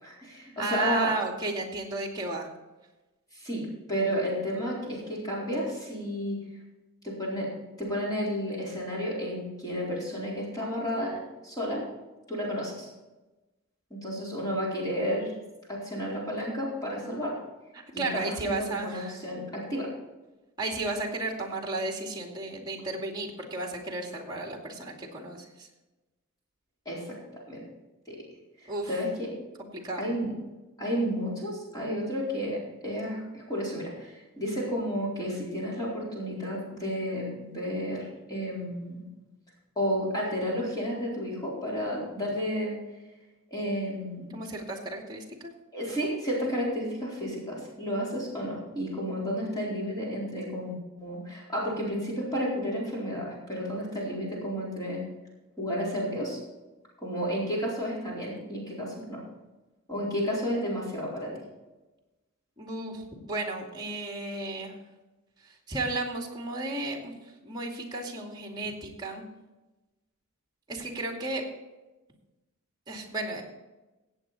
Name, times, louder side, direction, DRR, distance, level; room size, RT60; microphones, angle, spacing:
voice 1, 0.0-1.1 3.3-6.4 7.0-7.5 7.8-11.8 12.3-12.9 13.9-15.3 15.7-17.4 17.9-19.9 26.9-27.1 27.5-27.6 28.1-28.2 28.6-29.3 30.0-30.3 30.8-39.0 39.8-42.7 43.5-44.4 45.7-55.0 55.6-56.4 57.0-59.2 59.9-61.3, equal, 20° left, -5 dB, 4.3 m, -32 dB
voice 2, 0.6-2.5 17.7-19.2 20.6-25.7 28.7-28.9 29.6-30.1 44.3-45.5 62.6-64.7 65.4-67.1 67.4-69.2 70.7-71.5 72.9-73.4, right 2 dB, 20° right, 1 dB, 2.3 m, -34 dB
17.0 x 8.0 x 4.2 m, 1.1 s
head